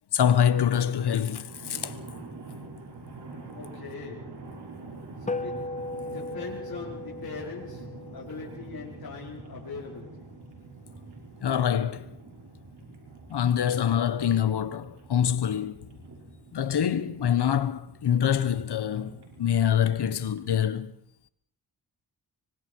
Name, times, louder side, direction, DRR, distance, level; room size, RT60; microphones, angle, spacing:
voice 1, 0.1-2.0 11.4-12.2 13.3-15.9 16.5-20.9, left 9 dB, 75° left, 1.4 m, -25 dB
sound 1, 0.8-20.5, right 3 dB, 90° right, 5.8 m, -45 dB
voice 2, 3.6-4.4 5.2-5.6 6.1-10.3, left 5 dB, 60° left, 5.0 m, -41 dB
sound 2, 5.3-9.9, left 2 dB, 20° left, 0.9 m, -37 dB
24.5 x 24.5 x 4.7 m
cardioid pair, 75°, 40 cm